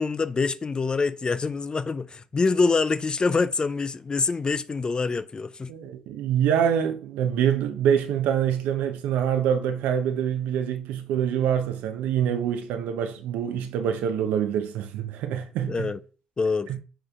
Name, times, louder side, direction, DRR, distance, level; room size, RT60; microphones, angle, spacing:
voice 1, 0.0-5.7 15.7-16.0 16.4-16.7, left 4 dB, 30° left, 0.5 m, -25 dB
voice 2, 5.7-15.9 16.7-16.8, right 9 dB, 65° right, 0.8 m, -25 dB
12.5 x 5.0 x 2.4 m
hypercardioid pair, 50°, 3 cm